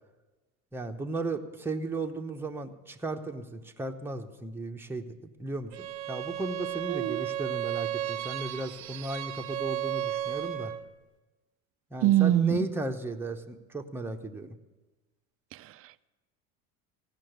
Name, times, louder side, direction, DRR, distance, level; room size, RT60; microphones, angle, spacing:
voice 1, 0.7-10.7 11.9-14.6, right 2 dB, 5° right, 0.8 m, -35 dB
Bowed string instrument, 5.7-10.9, right 12 dB, 80° right, 0.7 m, -34 dB
voice 2, 6.9-7.3 12.0-12.6 15.5-16.1, right 13 dB, 35° right, 0.4 m, -25 dB
15.5 x 5.9 x 7.8 m
supercardioid pair, 95°, 42 cm